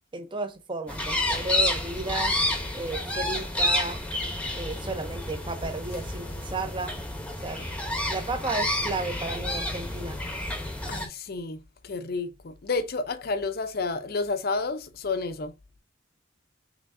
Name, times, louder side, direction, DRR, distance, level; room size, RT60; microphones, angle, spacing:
voice 1, 0.1-2.4 2.7-4.0 4.5-6.9 7.4-7.7 8.1-10.2, right 3 dB, 25° right, 0.6 m, -33 dB
sound 1, 0.9-11.1, left 1 dB, 5° left, 0.8 m, -30 dB
voice 2, 10.9-15.8, left 3 dB, 50° left, 0.6 m, -31 dB
5.9 x 3.1 x 2.5 m
head